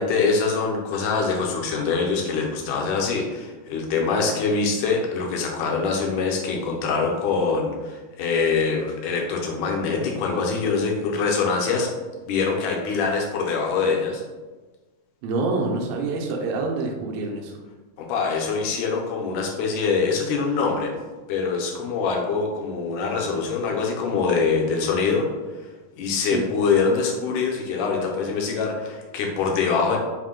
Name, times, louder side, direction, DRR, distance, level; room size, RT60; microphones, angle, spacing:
voice 1, 0.0-11.9 12.3-14.2 18.0-20.9 21.3-25.3 25.6-30.0, left 4 dB, 80° left, 0 dB, 2.0 m, -24 dB
voice 2, 15.2-17.6 26.2-26.5, right 3 dB, 90° right, 1 dB, 2.5 m, -27 dB
5.5 x 2.2 x 3.6 m, 1.3 s
omnidirectional pair, 4.0 m